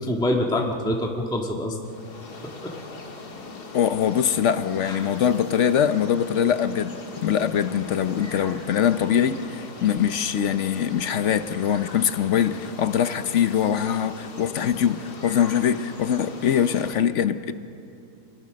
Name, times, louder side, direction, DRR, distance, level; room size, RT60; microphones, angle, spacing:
voice 1, 0.0-1.8 2.6-2.7 4.9-5.1, left 1 dB, 5° left, 1.4 m, -25 dB
sound 1, 1.8-17.0, left 3 dB, 85° left, 2.4 m, -40 dB
voice 2, 3.7-17.5, left 8 dB, 55° left, 0.9 m, -23 dB
27.0 x 21.0 x 6.3 m
omnidirectional pair, 1.7 m